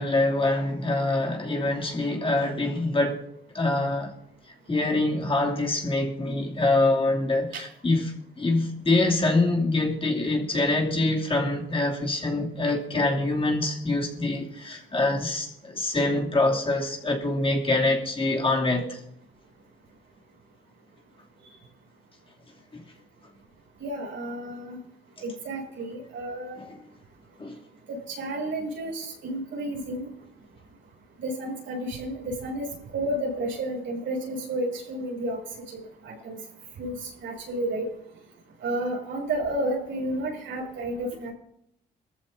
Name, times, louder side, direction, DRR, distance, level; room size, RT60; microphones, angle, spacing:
voice 1, 0.0-3.2 3.5-4.1 4.7-19.0 22.7-22.8 26.6-26.7 27.4-27.5, left 2 dB, 25° left, 3.0 m, -25 dB
voice 2, 23.8-24.8 25.2-26.7 27.9-30.1 31.2-32.7 32.9-35.4 35.7-36.4 36.8-37.9 38.6-41.3, right 1 dB, 75° right, 6.4 m, -31 dB
21.5 x 14.5 x 2.8 m
cardioid pair, 90°, 20 cm